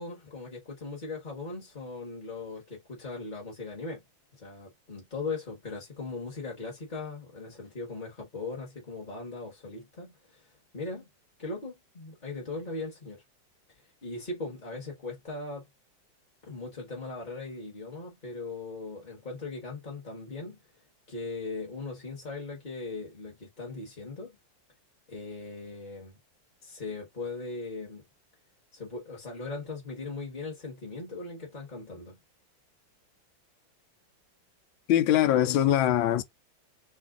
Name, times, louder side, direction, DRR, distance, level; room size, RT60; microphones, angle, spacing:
voice 1, 0.0-4.0 4.3-11.1 11.4-13.2 14.0-15.7 16.4-20.6 21.1-24.4 25.1-26.1 26.6-28.0 28.7-32.2, left 3 dB, 30° left, 1.1 m, -39 dB
voice 2, 34.9-36.2, left 12 dB, 85° left, 1.4 m, -22 dB
3.1 x 2.6 x 3.6 m
omnidirectional pair, 2.1 m